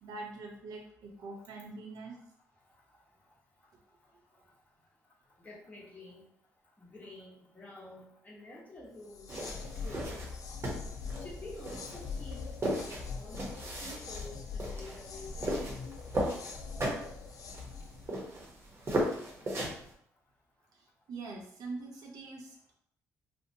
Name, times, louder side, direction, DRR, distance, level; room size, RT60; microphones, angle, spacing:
voice 1, 0.0-2.2 20.7-22.7, right 3 dB, 70° right, 0 dB, 0.7 m, -44 dB
voice 2, 5.4-6.2 6.8-10.2 11.2-12.5 12.8-13.4 13.8-15.4, left 2 dB, 25° left, -5 dB, 1.1 m, -49 dB
sound 1, 9.0-18.1, left 5 dB, 60° left, 0.3 m, -42 dB
sound 2, 9.3-19.9, right 1 dB, 40° right, 0.9 m, -36 dB
2.6 x 2.1 x 2.7 m, 0.67 s
supercardioid pair, 60°, 7 cm